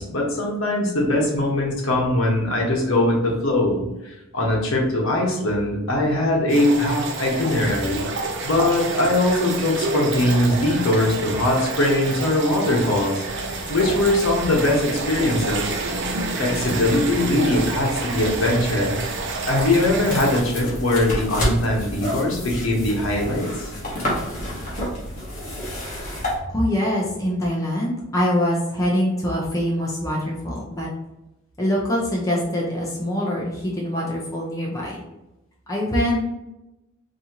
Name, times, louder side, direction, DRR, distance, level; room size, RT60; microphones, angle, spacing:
voice 1, 0.0-8.1 8.4-13.2 13.7-15.8 16.4-18.9 19.4-23.7, left 1 dB, 65° left, -1 dB, 1.0 m, -21 dB
sound 1, 6.5-20.4, right 3 dB, 55° right, 0.5 m, -29 dB
sound 2, 13.2-26.4, equal, 35° left, 1.1 m, -32 dB
voice 2, 26.5-30.9 31.6-35.0 35.7-36.2, equal, 15° left, -4 dB, 0.6 m, -24 dB
4.2 x 2.7 x 2.9 m, 0.94 s
head